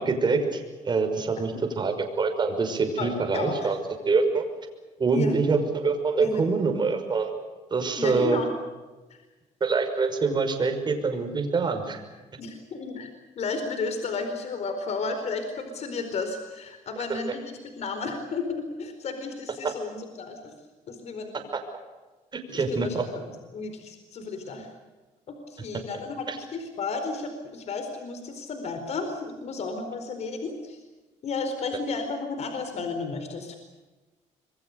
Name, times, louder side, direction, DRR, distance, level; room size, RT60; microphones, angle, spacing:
voice 1, 0.0-3.8 4.1-4.5 5.0-7.3 7.7-8.4 9.6-12.0 19.6-19.7 22.3-23.0 26.3-26.4, right 4 dB, 35° right, 5 dB, 5.8 m, -25 dB
voice 2, 3.0-3.7 5.1-5.3 6.2-6.5 8.0-8.5 12.4-13.1 13.4-20.6 20.9-21.4 22.5-24.7 25.3-30.8 31.2-33.6, left 4 dB, 55° left, 7 dB, 4.5 m, -33 dB
27.0 x 23.0 x 6.8 m, 1.2 s
cardioid pair, 110°, 13 cm